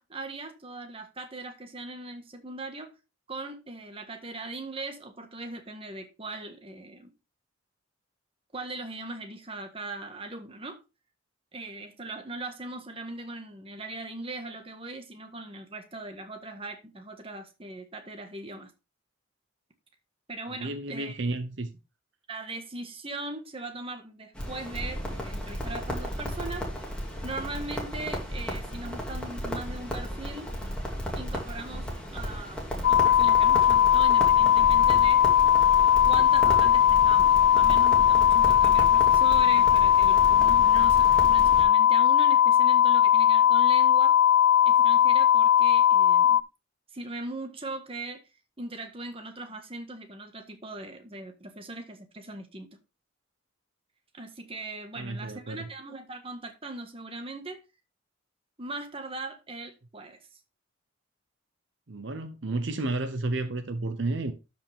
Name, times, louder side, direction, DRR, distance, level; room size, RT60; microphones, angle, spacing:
voice 1, 0.0-2.9 3.3-7.1 8.5-10.8 11.5-18.7 20.3-21.2 22.3-26.7 27.2-30.5 31.1-32.6 32.9-35.3 36.0-44.2 44.6-46.4 46.9-48.2 48.6-52.7 54.1-57.6 58.6-60.2, right 2 dB, 30° right, 1.5 m, -39 dB
voice 2, 20.6-21.7 54.9-55.7 61.9-64.3, right 2 dB, 65° right, 0.9 m, -31 dB
Crackle, 24.4-41.6, equal, 5° left, 2.7 m, -34 dB
sound 1, 32.8-46.4, left 10 dB, 70° left, 0.4 m, -19 dB
12.5 x 5.4 x 3.5 m
head